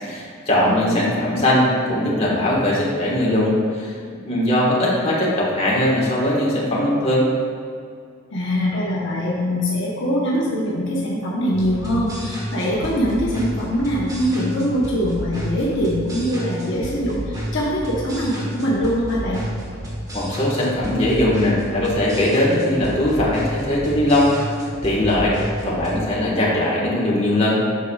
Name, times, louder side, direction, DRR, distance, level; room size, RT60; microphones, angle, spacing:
voice 1, 0.0-4.0 4.2-7.3 20.1-24.3 24.8-25.4 25.6-27.6, left 1 dB, 30° left, -5 dB, 1.4 m, -20 dB
voice 2, 0.6-1.0 8.3-19.4, equal, 60° left, -5 dB, 1.0 m, -23 dB
sound 1, 11.5-26.0, equal, 15° right, 1.1 m, -31 dB
8.2 x 6.6 x 2.3 m, 2.2 s
head